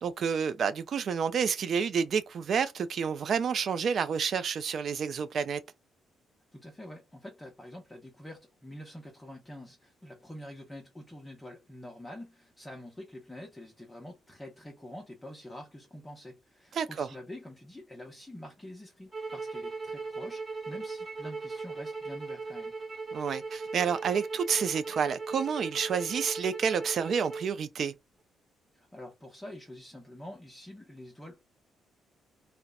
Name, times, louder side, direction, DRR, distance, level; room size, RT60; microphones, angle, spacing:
voice 1, 0.0-5.6 16.7-17.1 23.1-27.9, right 6 dB, 55° right, 0.3 m, -29 dB
voice 2, 6.5-22.7 28.7-31.4, left 1 dB, 10° left, 0.7 m, -46 dB
sound 1, 19.1-27.5, right 4 dB, 20° right, 1.1 m, -38 dB
2.8 x 2.0 x 2.2 m
cardioid pair, 90°, 0 cm